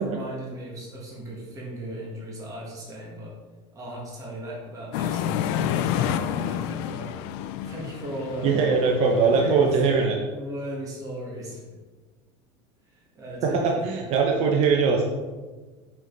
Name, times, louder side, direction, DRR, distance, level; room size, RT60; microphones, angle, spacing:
voice 1, 0.0-3.3 3.7-7.2 7.6-8.8 9.2-9.6 10.3-11.6 12.9-13.8, equal, 25° right, -4 dB, 1.9 m, -37 dB
sound 1, 4.9-10.0, left 10 dB, 65° left, 0.4 m, -29 dB
voice 2, 8.4-10.2 13.4-15.0, right 5 dB, 45° right, 1 dB, 0.9 m, -21 dB
5.7 x 5.2 x 4.0 m, 1.3 s
supercardioid pair, 135°, 14 cm